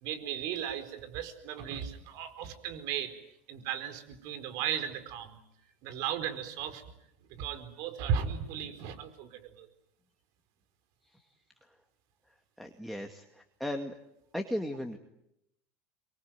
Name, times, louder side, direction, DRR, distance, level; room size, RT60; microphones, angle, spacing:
voice 1, 0.0-3.1 3.5-5.4 5.8-6.9 7.3-9.7, right 8 dB, 60° right, 9 dB, 4.5 m, -36 dB
voice 2, 12.6-14.0 14.3-15.0, left 1 dB, ahead, 3 dB, 2.2 m, -36 dB
26.0 x 23.5 x 9.3 m, 0.80 s
supercardioid pair, 110°, 7 cm